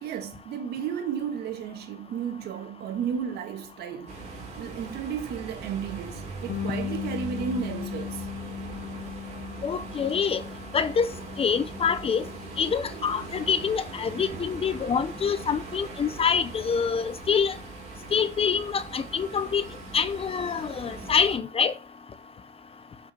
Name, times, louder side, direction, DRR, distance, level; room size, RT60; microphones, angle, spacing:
voice 1, 0.0-4.1 4.6-8.2 14.3-14.4, right 7 dB, 75° right, 1.8 m, -33 dB
sound 1, 4.1-21.4, right 4 dB, 40° right, 3.4 m, -41 dB
Bass guitar, 6.5-12.7, left 10 dB, 75° left, 0.7 m, -37 dB
voice 2, 9.6-10.4 10.7-11.1 11.4-12.2 12.6-17.5 18.1-19.6 19.9-21.7, left 6 dB, 35° left, 0.9 m, -26 dB
7.4 x 5.8 x 4.3 m
cardioid pair, 110°, 17 cm